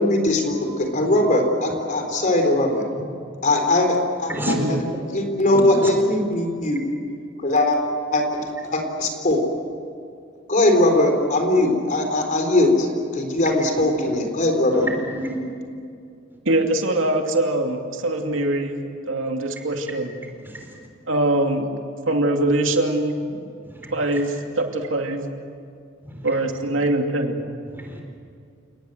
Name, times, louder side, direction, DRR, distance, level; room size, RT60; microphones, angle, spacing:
voice 1, 0.0-2.8 3.4-4.8 5.1-6.8 7.4-7.8 8.1-8.4 8.7-9.4 10.5-12.9 13.1-14.9, left 1 dB, 40° left, 4 dB, 4.0 m, -20 dB
voice 2, 4.5-4.8 16.4-20.1 21.1-21.7 22.1-23.2 23.9-25.3 26.2-27.4, right 1 dB, 85° right, 3 dB, 2.6 m, -23 dB
voice 3, 5.5-5.9 14.7-15.5 26.0-26.1 27.7-28.0, right 1 dB, 10° right, 1 dB, 4.6 m, -29 dB
29.5 x 19.0 x 7.9 m, 2.4 s
head